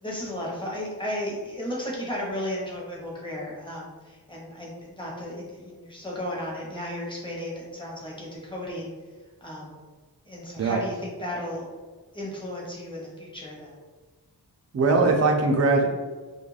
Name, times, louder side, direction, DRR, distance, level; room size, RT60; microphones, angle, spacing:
voice 1, 0.0-8.9 9.4-9.8 10.3-11.7 12.1-13.8, left 1 dB, 10° left, -4 dB, 0.8 m, -34 dB
voice 2, 14.7-15.9, right 3 dB, 40° right, 2 dB, 0.4 m, -20 dB
2.4 x 2.1 x 3.1 m, 1.3 s
wide cardioid pair, 80°, 40 cm